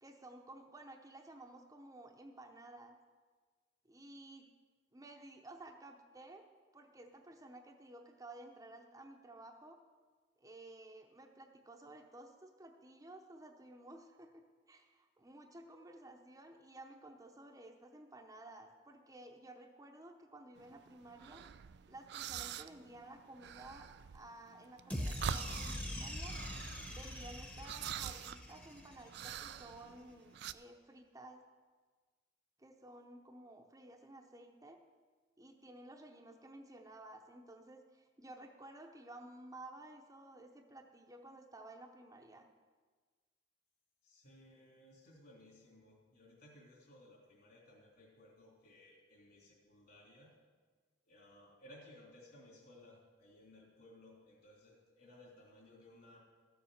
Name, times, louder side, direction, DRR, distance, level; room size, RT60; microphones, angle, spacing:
voice 1, 0.0-3.0 3.8-4.5 4.9-6.4 6.7-9.8 10.4-21.4 21.9-23.9 24.1-26.3 26.9-31.4 32.6-34.8 35.4-42.5, right 2 dB, 20° right, 3 dB, 0.7 m, -54 dB
sound 1, 20.6-30.5, right 9 dB, 65° right, 0.4 m, -46 dB
sound 2, 24.9-29.2, equal, 10° left, 1.0 m, -43 dB
voice 2, 44.0-50.3 51.0-56.2, left 1 dB, 55° left, -1 dB, 3.2 m, -60 dB
13.5 x 7.1 x 6.4 m, 1.4 s
head